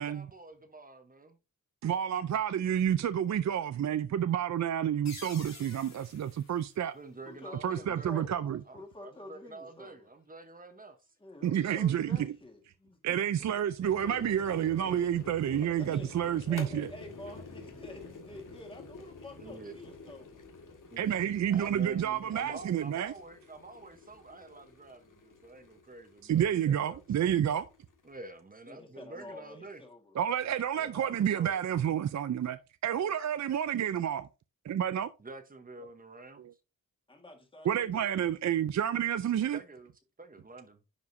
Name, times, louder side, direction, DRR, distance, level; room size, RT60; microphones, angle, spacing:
voice 1, 0.0-1.4 6.8-8.2 8.7-11.0 19.4-19.7 20.9-27.0 28.0-29.8 30.8-31.6 35.2-36.4 39.5-39.9 40.2-40.8, right 2 dB, 25° right, 0.9 m, -48 dB
voice 2, 1.8-6.9 7.6-8.6 11.4-12.2 13.0-16.9 21.0-23.1 26.2-27.7 30.2-34.3 34.6-35.1 37.6-39.6, right 9 dB, 55° right, 0.5 m, -29 dB
sound 1, 5.0-7.6, left 4 dB, 55° left, 2.6 m, -50 dB
voice 3, 7.2-8.5 8.7-10.1 11.2-13.5 14.6-14.9 15.8-16.1 16.5-20.5 28.7-30.2 33.0-33.1 37.1-38.2, left 2 dB, 15° left, 1.6 m, -49 dB
sound 2, 13.8-28.3, left 3 dB, 70° left, 1.9 m, -49 dB
10.5 x 4.9 x 2.6 m
wide cardioid pair, 175°, 33 cm